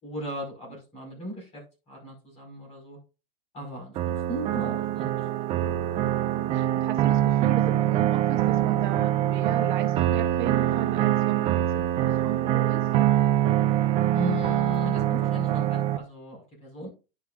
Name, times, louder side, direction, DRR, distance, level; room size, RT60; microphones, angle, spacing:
voice 1, 0.0-3.0 3.5-5.3 14.1-16.9, equal, 20° left, -1 dB, 5.2 m, -36 dB
sound 1, 3.9-16.0, right 12 dB, 20° right, 0.7 m, -24 dB
voice 2, 6.3-12.9, right 12 dB, 55° right, 6 dB, 1.0 m, -35 dB
10.5 x 7.4 x 2.5 m, 0.30 s
supercardioid pair, 155°, 29 cm